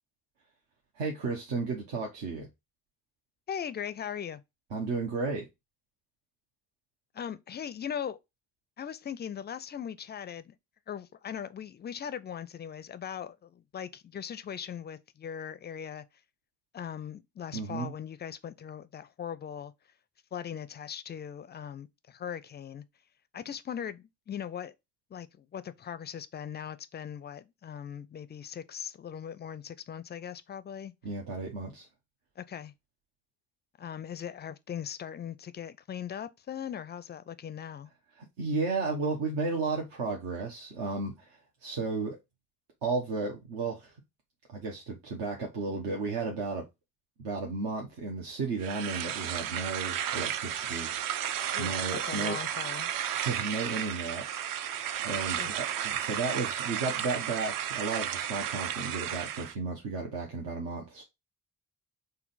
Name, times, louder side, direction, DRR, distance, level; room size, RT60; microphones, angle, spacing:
voice 1, 1.0-2.5 4.7-5.4 17.5-17.9 31.0-31.9 38.2-42.2 42.8-44.0 44.5-46.6 47.2-50.9 51.2-51.3 51.6-52.4 53.1-55.7 55.9-61.0, right 4 dB, 65° right, 1.0 m, -33 dB
voice 2, 3.5-4.4 7.1-8.2 8.8-10.5 10.9-16.0 16.7-19.7 20.3-22.8 23.3-24.7 25.1-30.9 32.4-32.7 33.8-37.9 51.5-52.9 55.4-55.6, left 8 dB, 25° left, 0.4 m, -39 dB
sound 1, 48.6-59.5, right 10 dB, 45° right, 0.5 m, -33 dB
3.8 x 2.2 x 4.0 m
hypercardioid pair, 45°, 46 cm